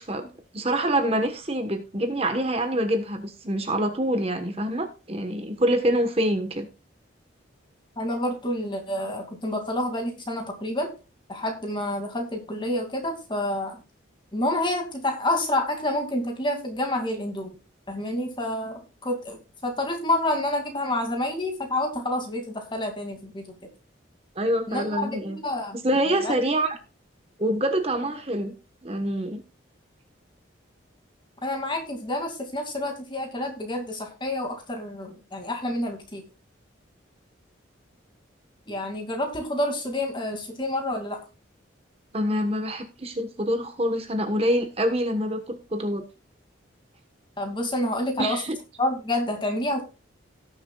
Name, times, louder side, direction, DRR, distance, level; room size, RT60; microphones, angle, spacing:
voice 1, 0.0-6.7 24.4-25.4 25.7-26.8 27.4-28.5 28.8-29.4 42.1-46.0 48.2-48.6, right 1 dB, 30° right, 6 dB, 1.2 m, -26 dB
voice 2, 8.0-10.9 11.3-13.8 14.3-17.5 17.9-23.5 24.7-25.8 26.2-26.3 31.4-36.2 38.7-41.2 47.4-48.4 48.8-49.8, left 1 dB, 25° left, 3 dB, 2.3 m, -28 dB
18.0 x 7.1 x 2.3 m, 0.33 s
head